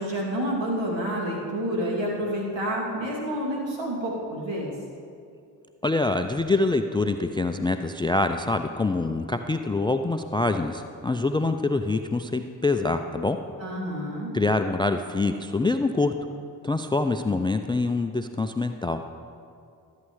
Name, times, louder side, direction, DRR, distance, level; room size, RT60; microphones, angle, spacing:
voice 1, 0.0-4.7 13.6-14.3, equal, 65° right, -4 dB, 2.7 m, -29 dB
voice 2, 5.8-13.4 14.3-16.1 16.6-19.0, left 3 dB, 10° left, 8 dB, 0.3 m, -25 dB
13.5 x 8.6 x 3.2 m, 2.4 s
hypercardioid pair, 40°, 47 cm